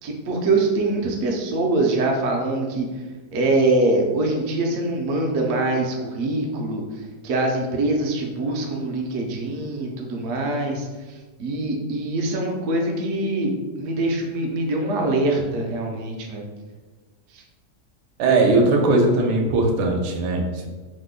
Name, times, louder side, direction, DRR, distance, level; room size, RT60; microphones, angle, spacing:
voice 1, 0.0-2.9 3.3-6.8 7.2-16.4 17.3-17.4, right 2 dB, 65° right, 1 dB, 0.7 m, -24 dB
voice 2, 18.2-20.7, right 2 dB, 85° right, 2 dB, 1.2 m, -19 dB
3.1 x 2.1 x 3.6 m, 1.3 s
omnidirectional pair, 1.8 m